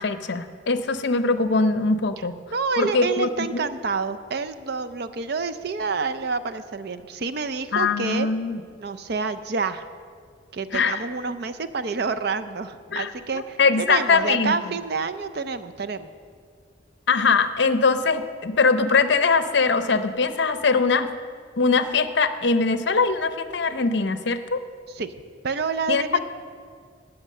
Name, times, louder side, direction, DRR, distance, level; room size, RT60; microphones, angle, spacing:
voice 1, 0.0-2.3 2.8-3.6 7.7-8.6 10.7-11.0 12.9-13.1 13.6-14.5 17.1-21.1 21.6-24.6 25.9-26.0, left 4 dB, 60° left, 10 dB, 0.6 m, -21 dB
voice 2, 2.5-8.3 8.8-9.9 10.5-16.1 24.9-25.1 25.4-26.2, right 4 dB, 55° right, 10 dB, 0.5 m, -28 dB
17.5 x 5.9 x 6.5 m, 2.1 s
head